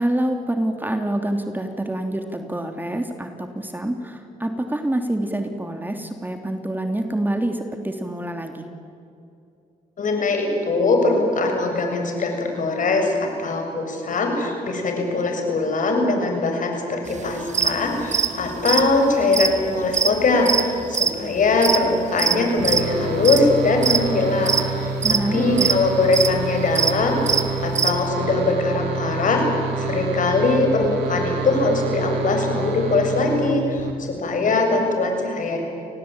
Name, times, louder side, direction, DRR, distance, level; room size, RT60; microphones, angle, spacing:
voice 1, 0.0-8.7 25.0-25.7, right 1 dB, 10° right, 5 dB, 3.0 m, -26 dB
voice 2, 10.0-29.5 29.8-35.6, left 3 dB, 55° left, 3 dB, 7.2 m, -21 dB
sound 1, 17.2-17.3 17.5-17.7 18.0-22.4 22.6-23.0 23.2-23.5 23.8-24.2 24.5-25.3 25.6-25.8 26.0-26.3 26.8-26.9 27.2-28.0, right 6 dB, 50° right, 1.9 m, -21 dB
sound 2, 22.6-33.9, right 3 dB, 85° right, 3.2 m, -28 dB
29.5 x 19.5 x 9.0 m, 2.6 s
supercardioid pair, 65°, 16 cm